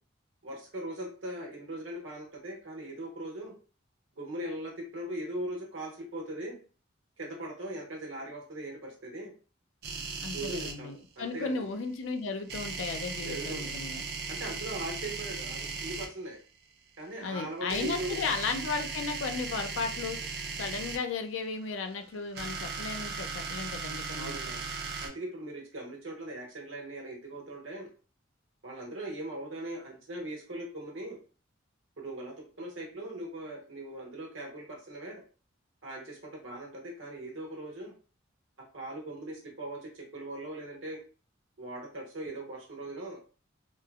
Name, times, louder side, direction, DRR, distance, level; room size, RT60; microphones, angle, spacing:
voice 1, 0.4-3.5 4.2-6.6 7.2-9.3 10.3-11.7 13.2-13.7 14.3-16.4 17.0-18.2 24.2-24.7 25.0-27.9 28.6-31.2 32.0-35.2 35.8-37.9 38.7-41.0 41.6-43.2, right 1 dB, 80° right, -1 dB, 1.0 m, -40 dB
sound 1, 9.8-10.7 12.5-16.1 17.7-21.0 22.1-25.1, right 4 dB, 55° right, 0.5 m, -37 dB
voice 2, 10.2-14.0 17.2-20.2 20.6-24.4, left 4 dB, 70° left, 7 dB, 0.4 m, -35 dB
3.0 x 2.0 x 2.3 m, 0.38 s
head